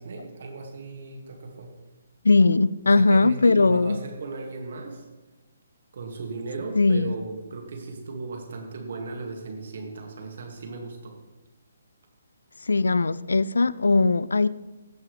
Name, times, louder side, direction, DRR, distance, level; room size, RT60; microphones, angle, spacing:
voice 1, 0.0-1.7 2.8-5.0 5.9-11.2, right 3 dB, 60° right, 2 dB, 1.9 m, -36 dB
voice 2, 2.2-4.0 6.8-7.1 12.7-14.5, left 3 dB, 75° left, 19 dB, 0.3 m, -19 dB
15.0 x 6.1 x 3.2 m, 1.1 s
figure-of-eight pair, 140°, 0 cm